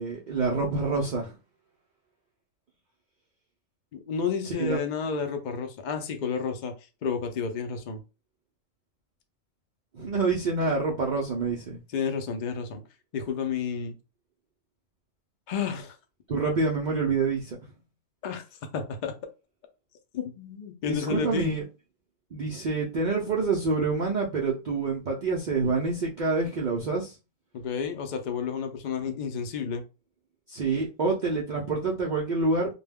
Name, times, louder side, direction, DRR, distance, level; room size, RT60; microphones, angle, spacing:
voice 1, 0.0-1.3 4.5-4.8 9.9-11.8 16.3-17.6 20.9-21.6 22.3-27.1 30.5-32.7, right 3 dB, 75° right, 0.4 m, -27 dB
voice 2, 3.9-6.7 7.0-8.0 11.9-12.8 13.1-13.9 15.5-16.0 18.2-18.4 18.7-19.1 20.1-21.5 27.5-29.8, left 6 dB, 70° left, 0.4 m, -31 dB
2.2 x 2.1 x 3.4 m
omnidirectional pair, 1.4 m